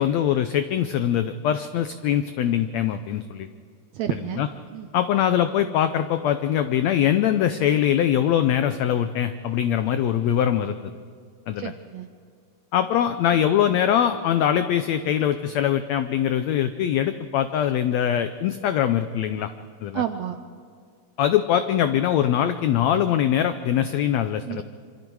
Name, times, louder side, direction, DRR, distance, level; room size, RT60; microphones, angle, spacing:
voice 1, 0.0-3.5 4.4-4.5 4.9-10.9 11.5-11.7 12.7-19.5 19.8-20.0 21.2-24.6, left 10 dB, 85° left, 10 dB, 1.5 m, -22 dB
voice 2, 3.9-4.4 4.7-4.9 11.6-12.1 19.9-20.4 24.5-24.6, right 10 dB, 80° right, 8 dB, 1.6 m, -30 dB
26.5 x 25.5 x 4.7 m, 2.1 s
omnidirectional pair, 3.9 m